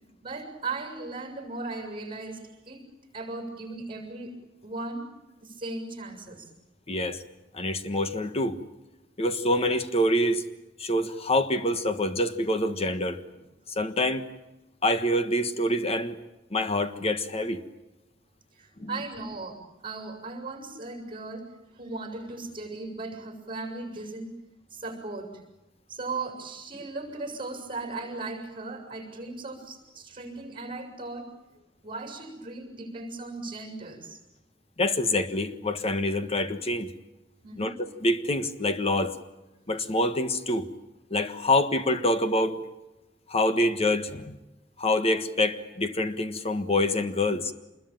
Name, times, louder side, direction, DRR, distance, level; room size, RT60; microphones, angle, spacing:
voice 1, 0.2-2.8 3.1-4.3 4.6-5.0 5.4-6.5 18.6-21.5 21.8-24.3 24.7-25.3 25.9-31.3 31.8-34.2 37.4-37.8, right 3 dB, 30° right, 6.6 m, -37 dB
voice 2, 6.9-7.2 7.5-8.6 9.2-10.4 10.8-13.2 13.7-14.3 14.8-16.2 16.5-17.6 18.8-19.0 34.8-36.9 37.6-39.1 39.7-40.7 41.1-42.6 43.3-44.4 44.8-47.5, left 1 dB, 35° left, 1.4 m, -26 dB
26.5 x 21.5 x 9.0 m
head